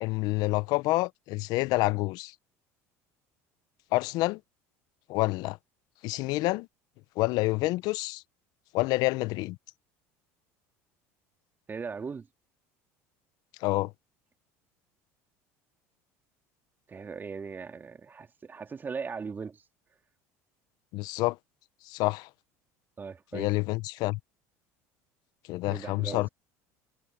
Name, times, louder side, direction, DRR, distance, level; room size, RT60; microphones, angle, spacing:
voice 1, 0.0-2.3 3.9-4.4 5.1-5.6 6.0-6.7 7.2-8.2 8.7-9.6 13.6-13.9 20.9-21.4 21.8-22.3 23.3-24.2 25.5-26.3, left 20 dB, 65° left, 0.7 m, -28 dB
voice 2, 11.7-12.3 16.9-19.6 23.0-23.5 25.7-26.3, right 5 dB, 25° right, 2.8 m, -38 dB
supercardioid pair, 90°, 7 cm